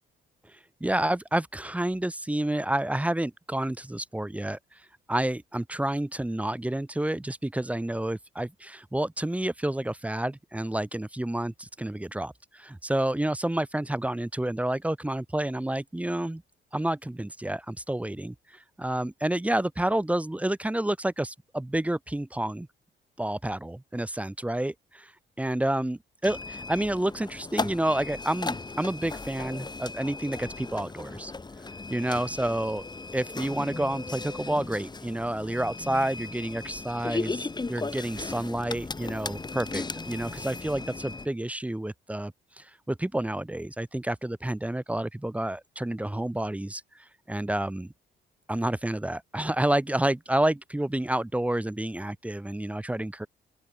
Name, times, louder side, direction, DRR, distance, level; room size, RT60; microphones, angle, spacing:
voice 1, 0.5-4.6 5.1-16.4 16.7-18.3 18.8-22.7 23.2-25.1 25.4-31.3 31.9-32.9 33.1-46.8 47.3-47.9 48.5-53.3, right 1 dB, 5° right, 0.7 m, -29 dB
sound 1, 26.2-41.3, left 3 dB, 20° left, 2.1 m, -37 dB
open air
cardioid pair, 90°, 20 cm